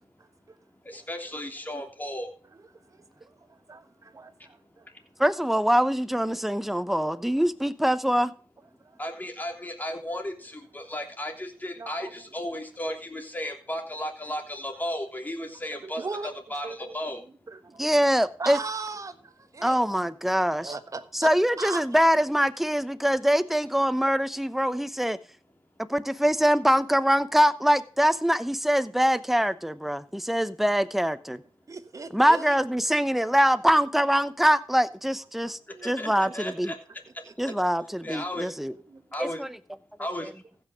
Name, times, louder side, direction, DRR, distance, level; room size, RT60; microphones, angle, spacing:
voice 1, 0.2-0.6 0.9-1.0 2.9-4.9 6.7-6.8 8.8-9.0 11.8-12.1 15.8-16.3 16.6-17.0 17.5-17.8 18.4-19.8 20.6-21.3 21.6-21.8 31.7-32.6 35.4-36.3 37.2-37.3 38.9-39.0, right 4 dB, 40° right, 1.4 m, -38 dB
voice 2, 0.8-2.3 9.0-17.2 35.8-36.8 38.0-38.5 39.1-39.4 40.0-40.3, left 1 dB, 20° left, 3.2 m, -34 dB
voice 3, 5.2-8.3 17.8-18.6 19.6-20.7 21.1-25.2 25.9-31.4 32.1-36.7 37.4-38.7 39.2-39.5, equal, 5° right, 0.9 m, -23 dB
15.5 x 6.2 x 5.2 m
cardioid pair, 60°, 9 cm